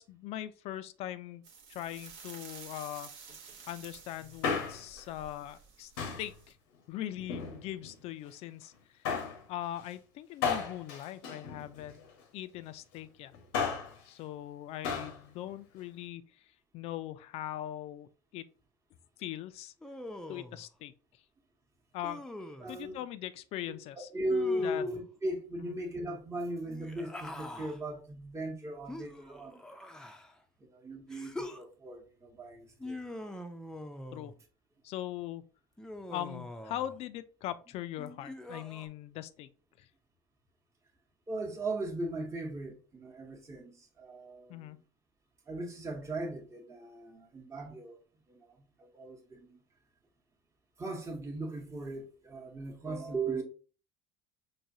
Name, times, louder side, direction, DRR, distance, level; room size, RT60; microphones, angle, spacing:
voice 1, 0.0-1.4 1.7-3.1 3.7-5.9 6.2-6.6 6.9-8.7 9.5-12.0 12.3-13.3 14.1-16.5 16.7-18.4 19.2-19.7 20.3-20.9 21.9-22.2 22.7-24.1 24.6-24.8 25.6-25.8 34.1-34.3 34.8-35.4 36.1-39.5 39.8-39.9 44.5-44.8, left 13 dB, 60° left, 0.4 m, -40 dB
sound 1, 1.4-6.5, right 5 dB, 70° right, 0.9 m, -51 dB
Male speech man speaking, 4.2-5.0 6.0-6.3 7.2-8.0 9.0-9.4 10.4-12.1 13.3-14.0 14.8-15.2 15.5-15.6, left 6 dB, 80° left, 0.8 m, -34 dB
Human voice, 19.8-20.6 22.0-22.7 24.3-25.1 26.6-27.8 28.9-30.4 31.1-31.6 32.8-34.4 35.8-37.0 38.0-38.9, left 1 dB, 5° left, 0.5 m, -44 dB
voice 2, 22.6-23.0 23.7-23.8 24.1-29.6 30.6-33.0 41.3-44.7 45.5-48.0 48.3-49.6 50.8-53.4, right 1 dB, 25° right, 0.9 m, -38 dB
4.7 x 2.2 x 2.7 m
hypercardioid pair, 75°, 12 cm